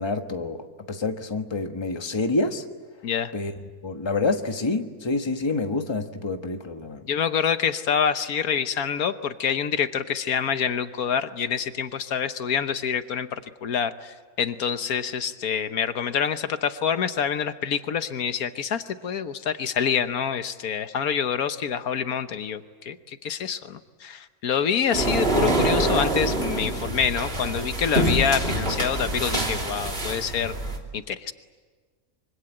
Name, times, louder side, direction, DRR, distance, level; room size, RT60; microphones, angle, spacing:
voice 1, 0.0-2.6 3.3-3.5 3.8-7.0, left 3 dB, 20° left, 6 dB, 1.3 m, -27 dB
voice 2, 7.1-13.3 13.6-30.6 30.9-31.3, left 7 dB, 80° left, 10 dB, 1.5 m, -26 dB
sound 1, 24.9-30.8, right 1 dB, 40° right, 3.0 m, -25 dB
25.5 x 24.5 x 8.9 m, 1.5 s
omnidirectional pair, 1.5 m